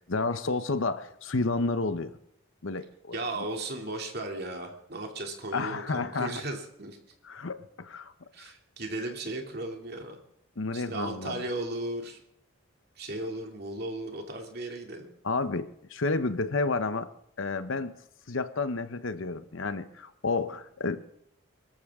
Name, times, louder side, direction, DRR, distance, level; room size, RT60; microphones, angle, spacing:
voice 1, 0.1-2.1 2.6-3.5 5.5-6.4 7.2-8.1 8.4-8.5 10.6-11.4 15.2-17.1 17.4-17.9 18.3-21.0, left 3 dB, 70° left, 11 dB, 0.9 m, -31 dB
voice 2, 3.1-7.0 8.3-10.2 10.7-12.2 13.0-15.1, right 2 dB, 50° right, 2 dB, 2.7 m, -36 dB
24.5 x 14.0 x 3.7 m, 0.73 s
head